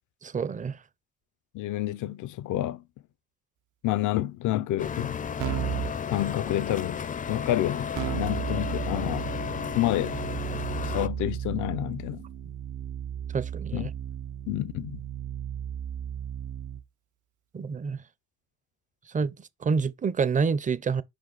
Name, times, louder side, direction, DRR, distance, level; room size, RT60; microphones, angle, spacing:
voice 1, 0.2-0.8 13.3-13.9 17.5-18.0 19.1-21.0, right 5 dB, 25° right, 0.5 m, -28 dB
voice 2, 1.5-2.8 3.8-5.2 6.1-7.0 7.3-9.3 9.7-10.2 10.9-12.2 13.7-13.9 14.5-15.0, left 14 dB, 80° left, 0.5 m, -29 dB
sound 1, 4.8-11.1, left 7 dB, 25° left, 0.4 m, -33 dB
Keyboard (musical), 5.4-6.0 7.9-16.8, right 10 dB, 75° right, 0.7 m, -34 dB
5.1 x 5.0 x 4.0 m
cardioid pair, 90°, 30 cm